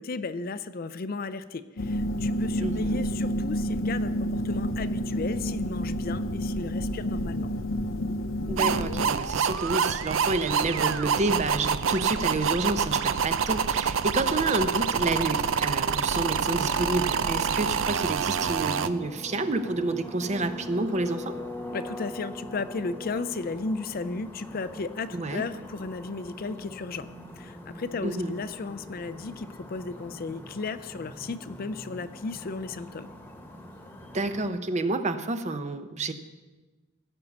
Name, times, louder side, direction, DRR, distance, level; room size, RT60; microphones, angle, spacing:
voice 1, 0.0-7.5 21.7-27.1 27.4-33.1, left 4 dB, 50° left, 13 dB, 0.5 m, -34 dB
sound 1, 1.8-9.1, equal, 90° left, 0.7 m, -29 dB
voice 2, 2.6-3.0 8.5-21.4 25.1-25.4 28.0-28.3 34.1-36.1, right 2 dB, 35° right, 10 dB, 0.7 m, -29 dB
sound 2, 8.6-18.9, right 6 dB, 90° right, 0.5 m, -27 dB
sound 3, 18.4-34.5, left 1 dB, 10° left, 1.2 m, -42 dB
15.5 x 5.4 x 7.0 m, 1.2 s
head